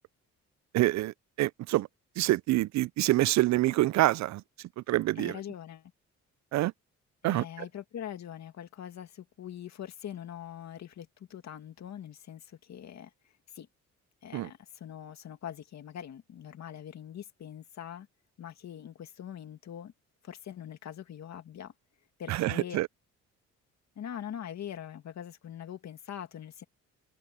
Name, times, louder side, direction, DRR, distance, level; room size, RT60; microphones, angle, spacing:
voice 1, 0.7-1.9 2.2-4.4 4.8-5.4 6.5-6.7 7.2-7.5 14.3-14.5 22.3-22.9, right 17 dB, 65° right, 0.4 m, -26 dB
voice 2, 5.2-5.9 7.2-13.1 13.5-13.7 14.2-18.1 18.4-19.9 20.2-21.7 22.2-22.8 24.0-26.6, left 10 dB, 65° left, 2.5 m, -43 dB
cardioid pair, 90°, 30 cm